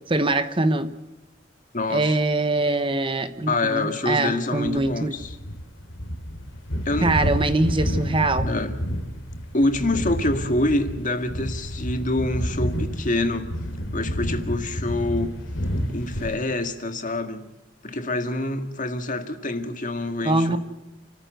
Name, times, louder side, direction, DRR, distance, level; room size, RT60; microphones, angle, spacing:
voice 1, 0.1-0.9 1.9-5.1 7.0-8.5 20.2-20.6, right 2 dB, 25° right, 1.0 m, -23 dB
voice 2, 1.7-2.2 3.5-5.4 6.9-7.2 8.5-8.8 9.5-13.5 13.9-15.4 15.9-17.5 17.8-20.6, left 2 dB, 40° left, 1.9 m, -26 dB
sound 1, 4.6-16.4, equal, 75° left, 3.1 m, -29 dB
29.5 x 14.0 x 8.0 m
head